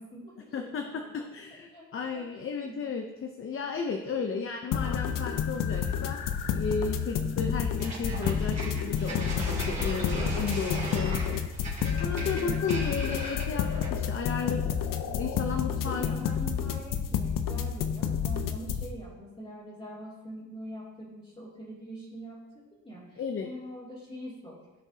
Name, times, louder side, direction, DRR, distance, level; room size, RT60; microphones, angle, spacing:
voice 1, 0.0-1.2 1.7-1.9 2.1-2.8 4.0-4.5 7.2-7.5 12.4-12.6 15.0-15.4 15.7-24.6, right 1 dB, 20° left, -11 dB, 2.9 m, -44 dB
voice 2, 0.5-6.2 6.5-11.4 11.7-16.4 23.2-23.5, left 5 dB, 40° left, 4 dB, 0.7 m, -34 dB
sound 1, 4.7-18.9, left 8 dB, 80° left, 0.7 m, -30 dB
sound 2, 7.8-14.1, right 1 dB, 25° right, 2.7 m, -36 dB
15.5 x 5.9 x 2.8 m, 1.2 s
cardioid pair, 130°, 32 cm